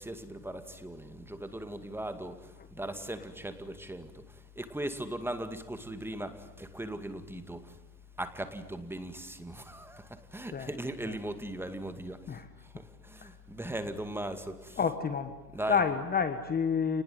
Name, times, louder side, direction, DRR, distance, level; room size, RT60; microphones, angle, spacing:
voice 1, 0.0-7.8 8.2-12.4 12.6-14.9 15.5-15.9, right 1 dB, 5° right, 9 dB, 2.2 m, -39 dB
voice 2, 14.8-15.3 15.7-17.0, left 6 dB, 20° left, 10 dB, 1.5 m, -29 dB
28.0 x 20.5 x 9.6 m, 1.0 s
supercardioid pair, 115°, 47 cm